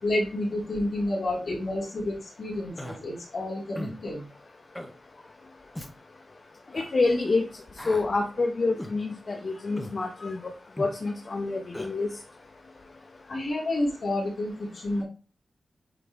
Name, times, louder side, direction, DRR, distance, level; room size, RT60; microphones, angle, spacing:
voice 1, 0.0-4.2 13.3-15.0, left 1 dB, 55° left, -4 dB, 3.1 m, -30 dB
Human voice, 2.8-3.0 3.8-4.0 4.7-4.9 5.7-5.9 6.7-6.9 7.8-8.1 8.8-9.0 9.8-10.0 10.8-11.0 11.7-11.9, left 1 dB, 10° left, 0.8 m, -37 dB
voice 2, 6.7-7.4 7.9-10.4 10.8-12.1, left 3 dB, 40° left, 3 dB, 0.8 m, -27 dB
8.1 x 3.8 x 3.6 m, 0.35 s
wide cardioid pair, 145°, 0 cm